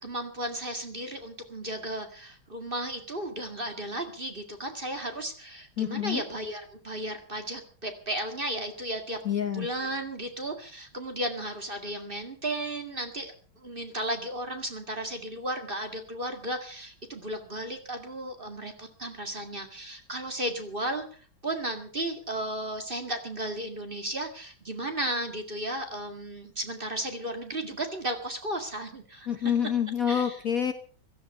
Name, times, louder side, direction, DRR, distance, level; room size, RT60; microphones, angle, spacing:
voice 1, 0.0-9.2 9.5-29.5 30.1-30.4, right 1 dB, 25° right, 5 dB, 2.1 m, -34 dB
voice 2, 5.8-6.2 9.2-9.7 29.3-30.7, left 9 dB, 50° left, 8 dB, 1.3 m, -27 dB
16.5 x 14.0 x 5.5 m, 0.41 s
omnidirectional pair, 2.2 m